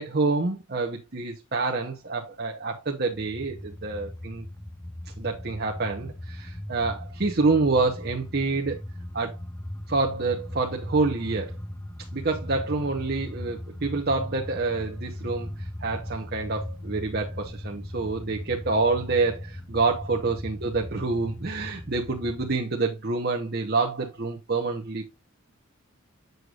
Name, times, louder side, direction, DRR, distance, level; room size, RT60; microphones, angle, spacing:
voice 1, 0.0-4.5 5.2-8.8 9.1-9.4 9.9-11.5 12.1-25.1, right 3 dB, 45° right, 0.9 m, -27 dB
sound 1, 3.1-22.6, left 1 dB, 10° left, 0.4 m, -38 dB
7.9 x 6.6 x 2.5 m
head